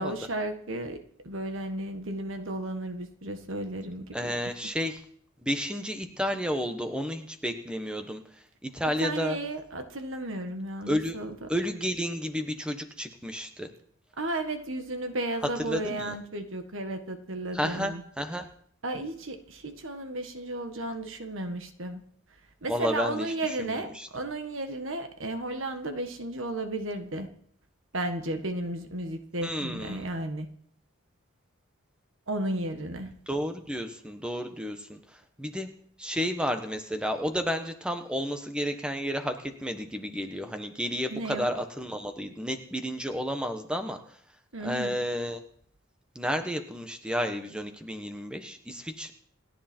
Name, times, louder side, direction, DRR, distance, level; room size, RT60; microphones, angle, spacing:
voice 1, 0.0-4.5 9.0-11.5 14.2-18.0 18.8-22.0 22.6-27.3 27.9-30.5 32.3-33.1 41.1-41.6 44.5-45.0, right 2 dB, 65° right, 7 dB, 1.6 m, -34 dB
voice 2, 4.1-5.0 5.4-8.2 8.6-9.4 10.9-11.2 11.5-13.7 15.7-16.2 17.5-18.4 22.7-23.3 23.6-24.1 29.4-30.1 33.3-35.0 35.4-35.7 36.0-44.0 44.6-45.4 46.1-49.1, equal, 5° right, 7 dB, 1.2 m, -31 dB
28.5 x 10.5 x 4.5 m, 0.63 s
head